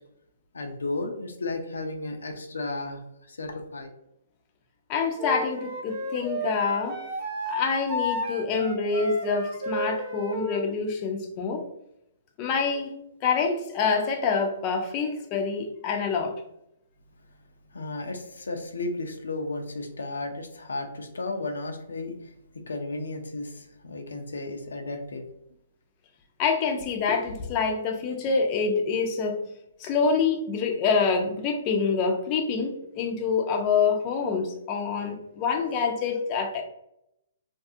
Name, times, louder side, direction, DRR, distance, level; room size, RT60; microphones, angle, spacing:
voice 1, 0.5-3.0 3.3-3.9 17.7-25.2, left 2 dB, 90° left, 4 dB, 0.5 m, -34 dB
voice 2, 4.9-7.0 7.5-11.6 12.4-12.9 13.2-16.3 26.4-29.5 29.8-36.6, left 5 dB, 30° left, 3 dB, 0.5 m, -26 dB
Wind instrument woodwind instrument, 5.2-10.6, equal, 45° right, 0.5 m, -32 dB
2.5 x 2.4 x 2.6 m, 0.79 s
hypercardioid pair, 140°, 0 cm